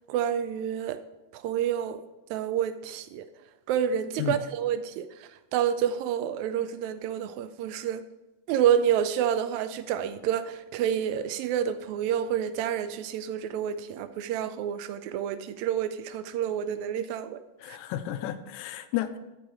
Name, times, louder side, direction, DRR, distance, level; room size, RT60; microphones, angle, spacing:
voice 1, 0.1-1.0 1.3-2.0 2.3-3.3 3.7-8.0 8.5-17.8, right 9 dB, 90° right, 1.6 m, -29 dB
voice 2, 17.6-19.2, left 12 dB, 80° left, 1.8 m, -32 dB
14.0 x 4.8 x 4.7 m
omnidirectional pair, 3.8 m